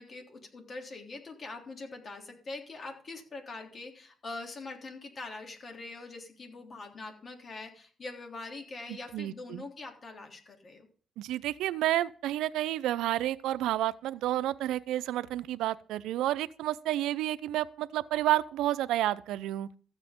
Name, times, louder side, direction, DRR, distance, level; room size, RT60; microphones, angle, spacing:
voice 1, 0.0-10.9, left 3 dB, 40° left, 3.4 m, -43 dB
voice 2, 9.1-9.6 11.2-19.7, right 14 dB, 90° right, 0.6 m, -30 dB
14.0 x 8.2 x 5.2 m
cardioid pair, 90°, 0 cm